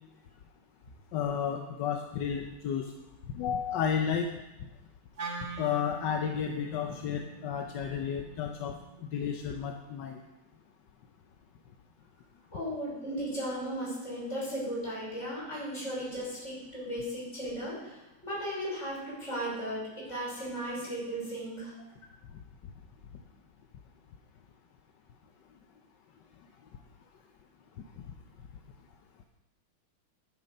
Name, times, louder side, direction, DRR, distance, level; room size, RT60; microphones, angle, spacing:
voice 1, 1.1-2.9 3.3-4.3 5.6-8.7 9.1-10.2, left 7 dB, 65° left, 4 dB, 1.2 m, -32 dB
Wind instrument woodwind instrument, 5.2-9.4, right 4 dB, 40° right, 1.0 m, -44 dB
voice 2, 12.5-17.9 18.2-21.7, equal, 30° left, -6 dB, 5.8 m, -36 dB
10.5 x 9.5 x 5.4 m, 0.99 s
omnidirectional pair, 2.4 m